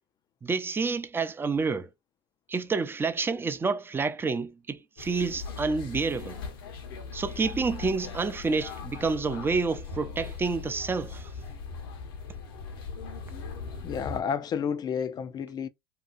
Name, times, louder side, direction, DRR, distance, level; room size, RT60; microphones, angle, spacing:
voice 1, 0.4-1.9 2.5-6.4 7.1-11.3, right 4 dB, 20° right, 0.5 m, -29 dB
sound 1, 5.0-14.2, left 5 dB, 70° left, 0.9 m, -39 dB
voice 2, 13.8-15.7, left 7 dB, 35° left, 0.4 m, -31 dB
2.8 x 2.3 x 2.4 m
hypercardioid pair, 75°, 12 cm